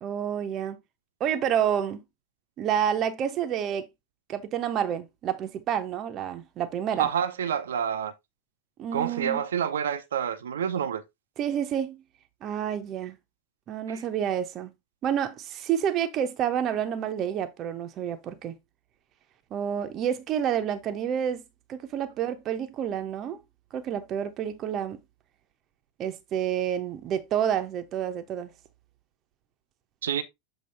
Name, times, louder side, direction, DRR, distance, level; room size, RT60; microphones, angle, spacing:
voice 1, 0.0-0.8 1.2-2.0 2.6-3.9 4.3-7.1 8.8-9.4 11.4-12.0 12.4-13.2 13.7-14.7 15.0-18.5 19.5-21.4 21.7-23.4 23.7-25.0 26.0-28.5, right 9 dB, 30° right, 0.9 m, -29 dB
voice 2, 7.0-8.1 8.9-11.0 13.9-14.0 30.0-30.2, right 8 dB, 65° right, 0.6 m, -28 dB
7.7 x 3.0 x 4.2 m
figure-of-eight pair, 90°, 0 cm